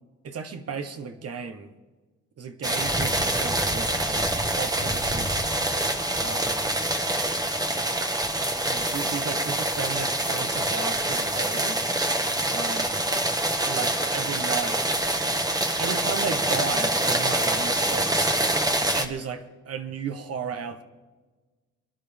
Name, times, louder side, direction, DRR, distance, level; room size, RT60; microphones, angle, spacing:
voice 1, 0.2-1.7 2.4-5.4 6.1-6.7 8.7-11.8 12.2-13.0 13.6-14.8 15.7-18.3 18.9-20.8, right 6 dB, 50° right, 1.4 m, -35 dB
sound 1, 2.6-19.0, right 1 dB, 10° right, 1.4 m, -25 dB
28.0 x 11.0 x 3.6 m
cardioid pair, 90°, 30 cm